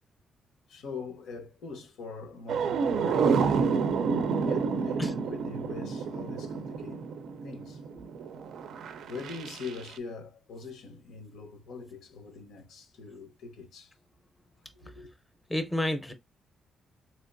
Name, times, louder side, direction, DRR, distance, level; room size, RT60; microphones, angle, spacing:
voice 1, 0.7-3.5 4.3-7.0 7.4-7.8 8.9-13.9 14.7-15.1, left 4 dB, 85° left, 0.9 m, -42 dB
sound 1, 2.5-10.0, right 5 dB, 70° right, 0.4 m, -29 dB
voice 2, 15.5-16.1, left 1 dB, 5° left, 0.6 m, -30 dB
3.6 x 2.8 x 2.5 m
cardioid pair, 145°, 0 cm